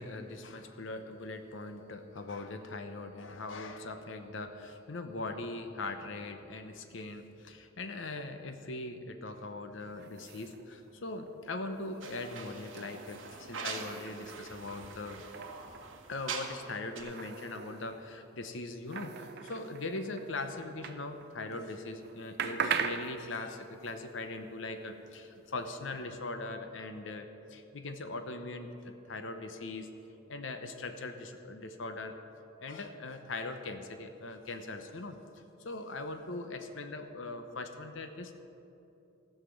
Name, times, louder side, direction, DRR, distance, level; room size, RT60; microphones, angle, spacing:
voice 1, 0.0-15.3 16.1-32.2 32.6-35.2 35.6-38.3, left 2 dB, 70° left, 7 dB, 0.8 m, -41 dB
sound 1, 9.9-21.6 21.9-26.0, right 6 dB, 55° right, 0.6 m, -42 dB
sound 2, 12.0-16.7 17.0-17.1, right 5 dB, 70° right, 1.3 m, -43 dB
15.0 x 5.8 x 7.1 m, 2.9 s
head